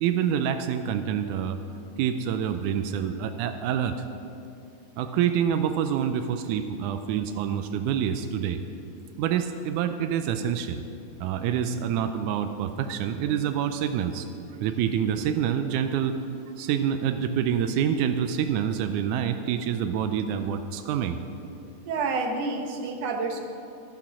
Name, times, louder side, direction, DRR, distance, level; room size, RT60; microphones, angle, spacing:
voice 1, 0.0-1.6 2.0-4.1 5.0-8.6 9.2-10.8 11.2-14.3 14.6-16.2 16.6-21.2, right 8 dB, 90° right, 8 dB, 2.1 m, -27 dB
voice 2, 21.9-23.4, right 3 dB, 65° right, 4 dB, 2.1 m, -29 dB
12.0 x 10.5 x 6.1 m, 2.6 s
omnidirectional pair, 3.5 m